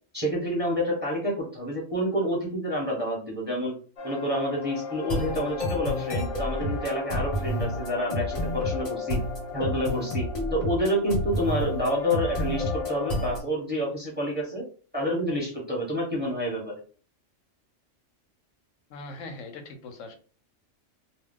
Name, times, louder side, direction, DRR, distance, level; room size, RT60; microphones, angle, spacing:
voice 1, 0.1-3.7 4.0-9.2 9.5-14.7 14.9-16.7, equal, 10° right, -4 dB, 1.0 m, -28 dB
sound 1, 4.0-13.4, left 3 dB, 50° left, 0.4 m, -38 dB
sound 2, 5.0-13.4, left 1 dB, 35° left, 0.8 m, -30 dB
voice 2, 18.9-20.2, left 2 dB, 80° left, 6 dB, 0.9 m, -40 dB
2.3 x 2.2 x 3.6 m, 0.40 s
omnidirectional pair, 1.3 m